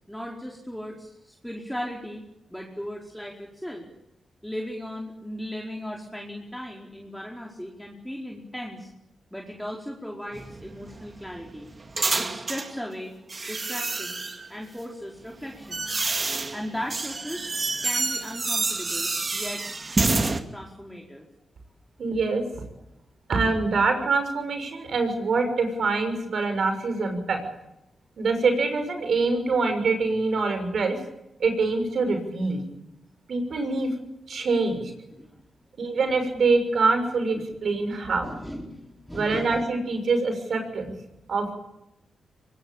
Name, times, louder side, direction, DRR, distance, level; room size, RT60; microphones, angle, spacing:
voice 1, 0.1-2.2 2.5-3.9 4.4-8.9 9.3-11.7 12.1-13.1 13.5-15.9 16.5-17.5 17.8-19.6 19.9-21.3 34.9-35.4 38.2-39.7, equal, ahead, -1 dB, 4.7 m, -37 dB
sound 1, 10.3-12.7 13.3-14.5 15.2-20.4, right 3 dB, 40° right, 2.3 m, -28 dB
voice 2, 22.0-22.4 23.3-27.4 28.2-31.0 31.4-32.6 33.3-33.9 34.3-34.8 35.8-38.3 39.1-40.9 41.3-41.5, right 3 dB, 70° right, 7 dB, 6.5 m, -24 dB
24.0 x 20.5 x 8.8 m, 0.88 s
cardioid pair, 60°, 0 cm